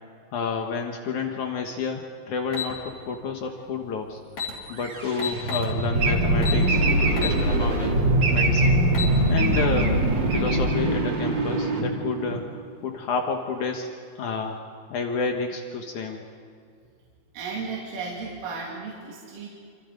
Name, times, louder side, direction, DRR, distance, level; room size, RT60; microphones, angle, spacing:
voice 1, 0.3-4.2 4.7-6.8 7.2-8.0 8.3-8.9 9.3-10.0 10.3-12.5 12.8-13.9 14.2-14.6 14.9-16.2, left 5 dB, 80° left, 3 dB, 1.7 m, -30 dB
sound 1, 2.5-2.7 3.9-4.0 4.3-4.5 5.2-5.7 6.4-6.6 7.2-7.4 7.8-7.9 8.7-9.1, left 6 dB, 45° left, 5.1 m, -30 dB
sound 2, 4.7-12.8, right 2 dB, 30° right, 2.6 m, -25 dB
sound 3, 5.9-11.3, right 1 dB, 50° right, 2.7 m, -24 dB
voice 2, 17.3-19.5, right 4 dB, 80° right, -4 dB, 5.4 m, -34 dB
27.5 x 27.0 x 5.3 m, 2.2 s
omnidirectional pair, 5.7 m